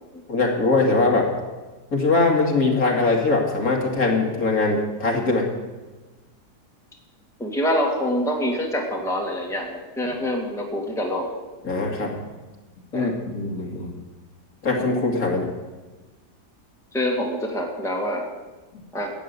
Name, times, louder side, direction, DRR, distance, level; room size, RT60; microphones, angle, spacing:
voice 1, 0.3-1.3 1.9-5.5 11.6-12.2 12.9-13.9 14.6-15.5 18.7-18.8, left 3 dB, 55° left, 0 dB, 2.8 m, -21 dB
voice 2, 7.4-11.3 11.6-11.7 12.9-13.1 16.9-18.3 18.9-19.1, equal, ahead, 0 dB, 2.0 m, -26 dB
14.5 x 9.3 x 8.3 m, 1.2 s
omnidirectional pair, 1.8 m